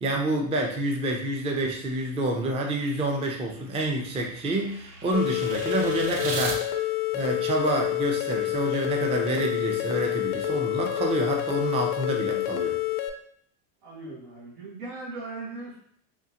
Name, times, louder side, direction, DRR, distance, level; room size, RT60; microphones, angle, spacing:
voice 1, 0.0-6.6 7.1-12.8, right 1 dB, 15° right, 1 dB, 0.4 m, -28 dB
sound 1, 3.0-6.6, right 3 dB, 45° right, 0.8 m, -38 dB
sound 2, 5.1-13.1, left 14 dB, 80° left, 0.6 m, -28 dB
voice 2, 13.8-15.8, right 3 dB, 85° right, -2 dB, 1.4 m, -38 dB
3.6 x 2.5 x 2.8 m, 0.64 s
supercardioid pair, 105°, 47 cm